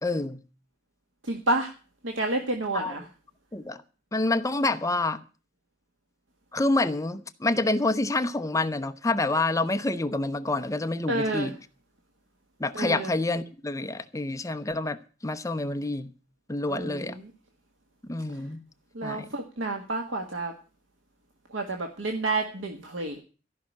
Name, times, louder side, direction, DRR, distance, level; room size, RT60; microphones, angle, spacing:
voice 1, 0.0-0.4 2.7-2.9 3.5-3.8 4.1-5.2 6.5-11.6 12.6-15.0 15.2-16.1 16.5-17.2 18.1-18.6 19.0-19.3, left 2 dB, 15° left, 0.8 m, -27 dB
voice 2, 1.2-1.7 2.0-3.0 11.1-11.5 12.7-13.1 16.7-17.3 18.9-20.5 21.5-23.2, right 2 dB, 80° right, 1.6 m, -29 dB
14.0 x 5.9 x 9.7 m
head